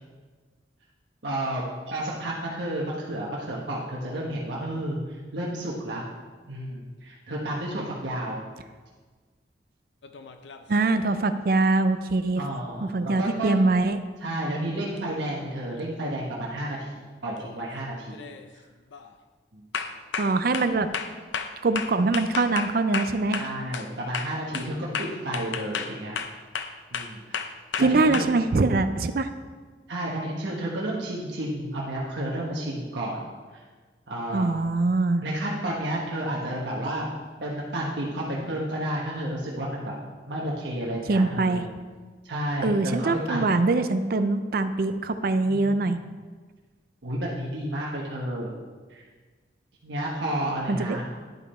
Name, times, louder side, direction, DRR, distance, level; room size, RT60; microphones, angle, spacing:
voice 1, 1.2-5.0 5.3-6.0 6.5-8.4 12.4-13.7 14.2-16.9 17.2-18.3 19.5-19.6 23.4-26.2 26.9-27.4 27.8-28.2 29.9-33.2 33.5-33.6 34.1-34.8 35.2-37.1 37.4-39.9 40.3-41.7 42.2-43.4 45.4-45.8 47.0-48.5 48.9-49.0 49.8-51.0, right 1 dB, 80° right, -4 dB, 1.2 m, -31 dB
sound 1, 10.0-10.7 15.0-15.1 16.6-16.9 17.3-17.7 18.1-18.5 18.9-19.1 19.7-23.9 24.1-28.2, left 6 dB, 85° left, 0.5 m, -33 dB
voice 2, 10.7-12.4 12.8-14.0 20.2-20.9 21.6-23.4 27.8-29.3 34.3-35.2 41.1-41.7 42.6-46.0 50.7-51.0, right 3 dB, 55° right, 10 dB, 0.4 m, -23 dB
11.0 x 5.3 x 4.3 m, 1.4 s
head